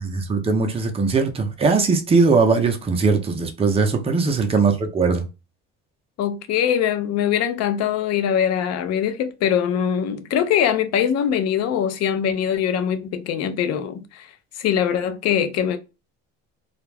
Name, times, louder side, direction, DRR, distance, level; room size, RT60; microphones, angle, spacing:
voice 1, 0.0-5.2, right 4 dB, 20° right, 0.6 m, -20 dB
voice 2, 6.2-14.3 14.6-15.8, left 9 dB, 55° left, 0.5 m, -22 dB
2.4 x 2.1 x 3.2 m
cardioid pair, 105°, 30 cm